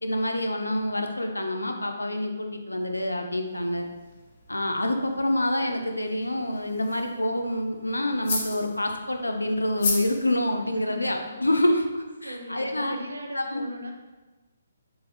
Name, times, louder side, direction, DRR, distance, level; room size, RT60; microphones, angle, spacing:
voice 1, 0.0-3.9 4.5-13.0 13.3-13.6, left 1 dB, 85° left, 4 dB, 0.3 m, -27 dB
sound 1, 3.4-11.3, left 3 dB, 45° left, 0.7 m, -37 dB
voice 2, 10.7-11.3 12.2-13.9, equal, 75° right, 2 dB, 0.4 m, -38 dB
3.3 x 2.3 x 2.4 m, 1.2 s
figure-of-eight pair, 135°, 0 cm